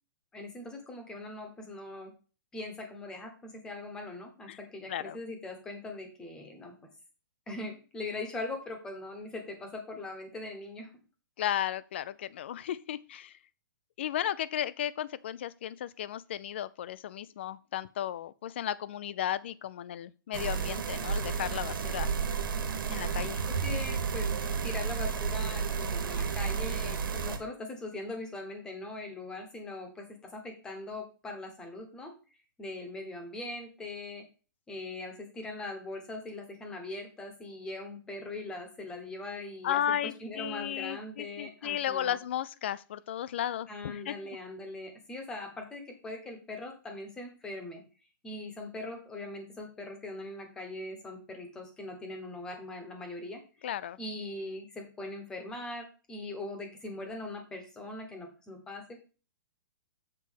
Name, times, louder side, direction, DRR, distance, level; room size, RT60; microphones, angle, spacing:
voice 1, 0.3-2.1 2.5-6.7 7.5-10.9 23.5-24.3 24.6-30.1 30.3-32.1 32.6-34.2 34.7-42.2 43.7-47.8 48.2-53.7 54.0-59.0, left 2 dB, 5° left, 1.0 m, -41 dB
voice 2, 11.4-13.3 14.0-22.1 22.9-23.4 39.6-44.4 53.6-54.0, left 11 dB, 30° left, 0.4 m, -34 dB
sound 1, 20.3-27.4, right 6 dB, 75° right, 1.7 m, -32 dB
7.5 x 4.1 x 6.3 m
hypercardioid pair, 175°, 11 cm